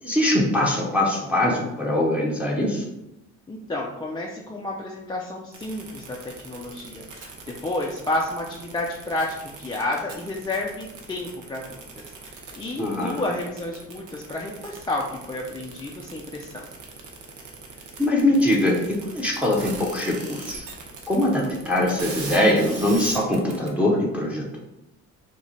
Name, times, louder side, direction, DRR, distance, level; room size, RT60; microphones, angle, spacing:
voice 1, 0.0-2.8 12.8-13.2 18.0-20.7 21.1-24.6, left 1 dB, 5° right, -2 dB, 0.7 m, -22 dB
voice 2, 3.5-16.7, left 2 dB, 15° left, -2 dB, 0.4 m, -31 dB
sound 1, 5.5-23.7, right 4 dB, 80° right, 0.8 m, -39 dB
4.7 x 2.1 x 2.8 m, 0.89 s
cardioid pair, 90°, 30 cm